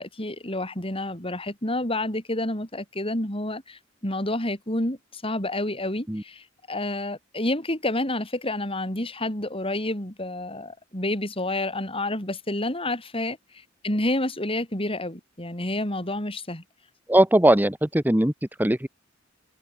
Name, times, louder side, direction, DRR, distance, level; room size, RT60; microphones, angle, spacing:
voice 1, 0.0-13.4 13.8-16.6, left 1 dB, 30° left, 7.6 m, -29 dB
voice 2, 17.1-18.3 18.6-18.9, right 1 dB, 10° right, 1.2 m, -19 dB
head